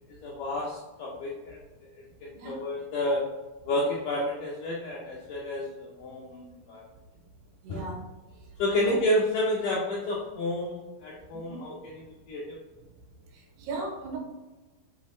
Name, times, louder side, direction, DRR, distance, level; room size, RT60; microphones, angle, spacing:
voice 1, 0.2-1.6 1.9-3.2 3.6-6.8 7.7-7.8 8.6-12.6, left 1 dB, 75° left, -4 dB, 1.9 m, -30 dB
voice 2, 7.6-8.0 8.7-8.9 11.3-11.6 13.3-14.2, right 3 dB, 75° right, 0 dB, 3.2 m, -37 dB
7.6 x 4.1 x 3.1 m, 1.2 s
omnidirectional pair, 4.7 m